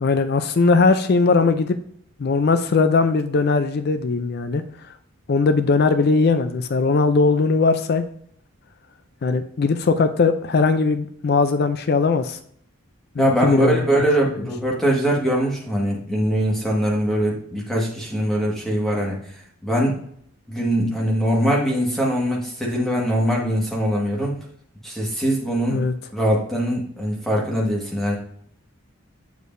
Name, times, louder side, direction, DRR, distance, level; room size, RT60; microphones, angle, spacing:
voice 1, 0.0-1.8 2.2-4.6 5.3-8.0 9.2-12.4 13.2-14.3 25.7-25.9, left 4 dB, 45° left, 10 dB, 0.4 m, -19 dB
voice 2, 13.2-19.2 19.6-20.0 20.5-24.3 24.8-25.8 26.1-28.2, right 1 dB, ahead, -4 dB, 1.5 m, -22 dB
7.1 x 6.4 x 2.6 m, 0.64 s
head